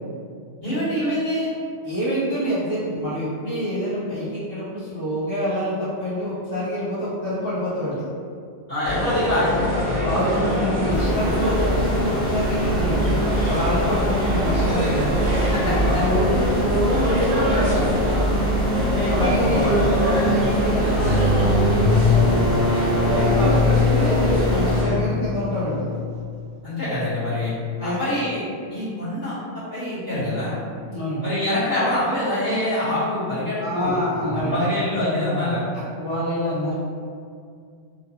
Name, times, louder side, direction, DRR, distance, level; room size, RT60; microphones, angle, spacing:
voice 1, 0.6-1.5 8.7-9.6 15.5-15.7 19.4-20.3 26.6-27.5 27.8-28.4 28.7-29.4 29.7-30.6 31.2-33.9 34.3-35.6, left 1 dB, 45° left, -15 dB, 1.2 m, -25 dB
voice 2, 1.8-8.0 10.0-13.0 13.4-15.1 15.5-17.9 19.1-22.5 22.8-25.8 27.8-28.0 30.9-31.3 33.6-34.6 36.0-36.7, equal, 25° left, -13 dB, 1.1 m, -26 dB
sound 1, 8.8-24.9, equal, 40° right, 0.8 m, -24 dB
sound 2, 10.9-24.8, equal, 5° left, 0.9 m, -26 dB
sound 3, 20.9-26.4, left 3 dB, 75° left, 0.3 m, -22 dB
3.0 x 2.2 x 2.7 m, 2.2 s
omnidirectional pair, 1.2 m